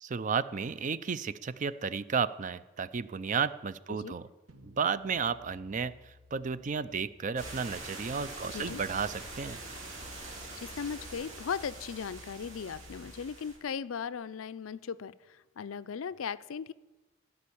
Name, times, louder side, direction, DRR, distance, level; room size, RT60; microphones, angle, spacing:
voice 1, 0.0-4.3 4.6-9.6, right 6 dB, 40° right, 15 dB, 0.4 m, -33 dB
sound 1, 4.5-9.8, left 2 dB, 85° right, 1.2 m, -60 dB
sound 2, 7.4-13.6, right 2 dB, 70° right, 3.2 m, -44 dB
voice 2, 8.5-8.8 10.6-16.7, left 6 dB, 80° left, 16 dB, 0.4 m, -38 dB
16.0 x 5.5 x 8.5 m, 1.1 s
head